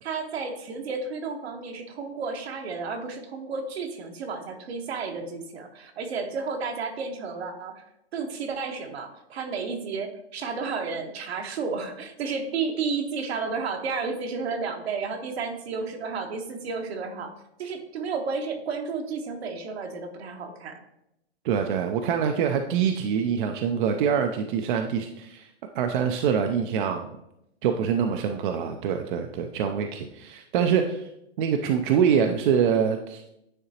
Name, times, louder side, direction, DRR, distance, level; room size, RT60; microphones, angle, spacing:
voice 1, 0.0-7.8 8.1-20.8, right 4 dB, 70° right, 4 dB, 1.3 m, -32 dB
voice 2, 21.4-25.5 25.7-27.2 27.6-31.1 31.4-33.3, right 7 dB, 50° right, 5 dB, 0.6 m, -25 dB
9.8 x 3.8 x 2.9 m, 0.82 s
hypercardioid pair, 125°, 32 cm